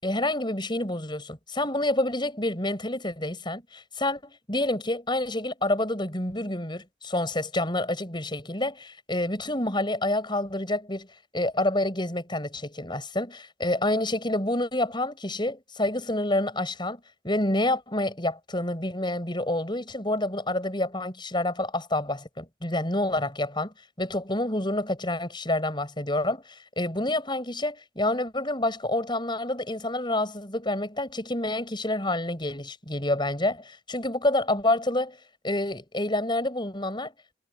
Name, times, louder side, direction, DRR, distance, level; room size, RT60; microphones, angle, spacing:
voice 1, 0.0-11.1 11.3-35.2 35.4-37.4, left 1 dB, 25° left, 7.3 m, -28 dB
head